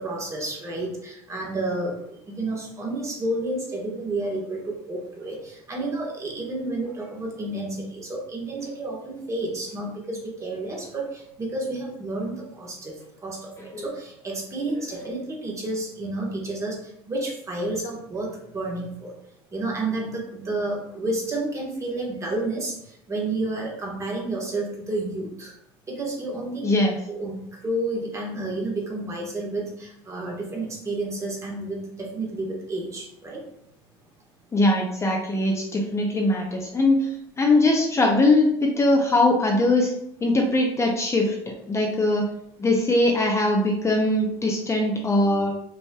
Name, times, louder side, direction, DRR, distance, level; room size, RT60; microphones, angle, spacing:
voice 1, 0.0-1.9 2.3-12.9 13.2-16.8 17.1-19.1 19.5-22.7 23.1-25.5 25.9-26.7 27.1-33.4, right 2 dB, 25° right, -1 dB, 1.3 m, -30 dB
voice 2, 26.6-26.9 34.5-39.9 40.2-42.3 42.6-45.5, left 2 dB, 20° left, 1 dB, 0.6 m, -21 dB
5.3 x 3.2 x 2.3 m, 0.74 s
supercardioid pair, 110°, 13 cm